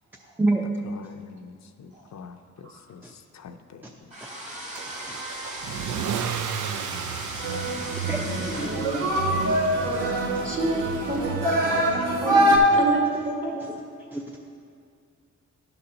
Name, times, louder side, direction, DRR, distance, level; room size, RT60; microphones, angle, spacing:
voice 1, 0.8-4.1, left 5 dB, 60° left, 7 dB, 0.5 m, -45 dB
sound 1, 4.1-12.2, right 1 dB, 20° right, 1.6 m, -39 dB
Car / Engine starting / Accelerating revving vroom, 4.7-11.9, right 8 dB, 70° right, 0.5 m, -35 dB
sound 2, 7.4-12.6, right 1 dB, 90° right, 1.3 m, -24 dB
voice 2, 8.1-9.1 11.4-11.6 11.9-12.0 12.4-12.5 13.5-13.7 14.1-14.4, right 1 dB, 5° right, 0 dB, 0.5 m, -28 dB
voice 3, 10.4-11.3 11.7-11.9 12.2-12.4 12.8-13.0 13.2-13.5, right 2 dB, 40° right, -2 dB, 1.7 m, -28 dB
11.5 x 3.9 x 5.7 m, 2.3 s
cardioid pair, 90°, 31 cm